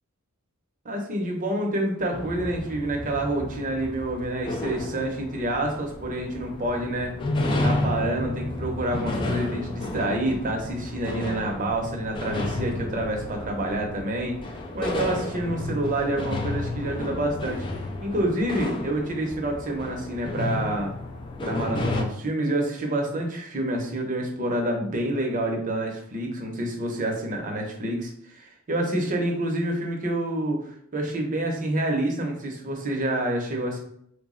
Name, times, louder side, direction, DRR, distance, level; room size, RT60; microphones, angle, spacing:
voice 1, 0.8-7.1 7.6-14.3 14.7-17.7 18.0-20.9 21.4-30.6 30.9-33.8, right 1 dB, 40° right, 1 dB, 0.6 m, -28 dB
sound 1, 2.1-22.0, left 2 dB, 25° left, 0.3 m, -32 dB
3.3 x 2.0 x 3.7 m, 0.69 s
head